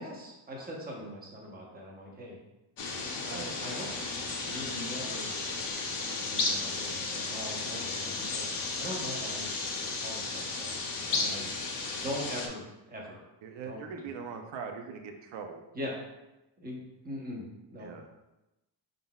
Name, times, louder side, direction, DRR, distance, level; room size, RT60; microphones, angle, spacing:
voice 1, 0.0-2.4 3.2-4.1 4.4-5.4 6.2-8.5 8.8-9.5 9.8-10.8 11.1-11.4 11.9-13.2 13.6-13.8 15.7-15.9 16.6-17.9, equal, 20° right, -2 dB, 0.8 m, -41 dB
sound 1, 2.8-12.5, left 3 dB, 50° left, 0.7 m, -34 dB
voice 2, 13.4-15.6 17.8-18.1, right 5 dB, 80° right, 5 dB, 0.6 m, -41 dB
5.4 x 3.8 x 2.3 m, 0.97 s
wide cardioid pair, 170°, 44 cm